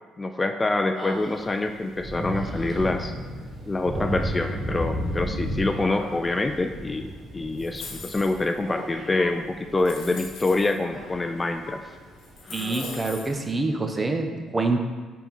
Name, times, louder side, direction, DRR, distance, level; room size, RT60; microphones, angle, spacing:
voice 1, 0.2-3.1 3.7-11.8, left 2 dB, 25° left, 7 dB, 0.4 m, -26 dB
Human voice, 1.0-1.9 2.3-3.1 3.8-5.3 5.6-6.7 8.7-9.4 10.4-11.4 11.7-12.0 12.4-13.2, equal, ahead, 1.5 m, -41 dB
Thunder / Rain, 1.1-13.5, equal, 60° right, 1.8 m, -35 dB
sound 1, 7.6-8.6 9.2-9.3 9.8-10.7 11.7-11.8 12.2-13.4, left 4 dB, 70° left, 1.3 m, -41 dB
voice 2, 12.5-14.8, right 3 dB, 25° right, 5 dB, 0.8 m, -26 dB
5.7 x 4.2 x 4.1 m, 1.4 s
hypercardioid pair, 55°, 0 cm